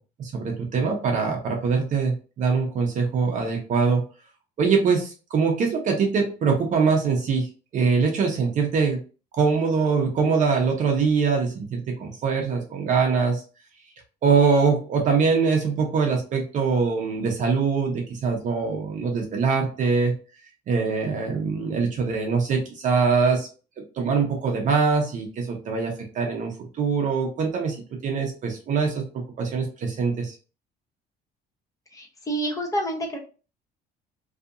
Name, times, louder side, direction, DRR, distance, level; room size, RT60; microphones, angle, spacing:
voice 1, 0.2-4.0 4.6-7.5 7.7-9.0 9.4-13.4 14.2-20.1 20.7-23.5 24.0-26.5 26.8-27.8 28.0-29.0 29.4-30.3, right 5 dB, 45° right, 1 dB, 0.6 m, -23 dB
voice 2, 31.9-33.2, right 1 dB, 20° left, 2 dB, 0.7 m, -28 dB
2.7 x 2.5 x 2.4 m, 0.35 s
cardioid pair, 155°, 19 cm